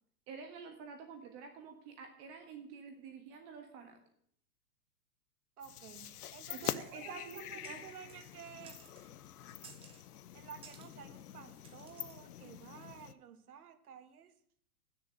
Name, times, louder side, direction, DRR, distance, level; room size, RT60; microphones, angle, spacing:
voice 1, 0.3-4.0 6.5-7.8, right 5 dB, 35° right, 1.5 m, -49 dB
sound 1, 5.6-13.1, left 11 dB, 90° left, 0.8 m, -46 dB
voice 2, 5.6-8.8 10.3-14.3, right 7 dB, 85° right, 1.4 m, -52 dB
sound 2, 6.6-7.0 7.6-8.3 8.6-9.1 9.6-10.1 10.6-10.9 11.6-12.2, right 6 dB, 10° right, 0.8 m, -57 dB
9.4 x 6.9 x 8.7 m
hypercardioid pair, 140°, 44 cm